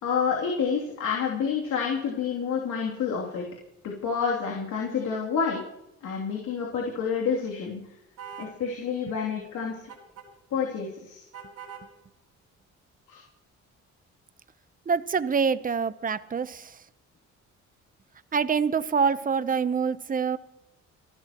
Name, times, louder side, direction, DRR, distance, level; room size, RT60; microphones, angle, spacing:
voice 1, 0.0-3.4 3.8-5.6 6.0-7.8 8.4-9.8 10.5-11.2 13.1-13.2, left 6 dB, 75° left, -3 dB, 3.0 m, -28 dB
sound 1, 8.2-8.6 9.9-10.3 11.3-11.9, right 6 dB, 75° right, 4.3 m, -42 dB
voice 2, 14.9-16.7 18.3-20.4, right 6 dB, 30° right, 14 dB, 0.8 m, -25 dB
27.0 x 13.0 x 3.0 m, 0.84 s
cardioid pair, 90°, 30 cm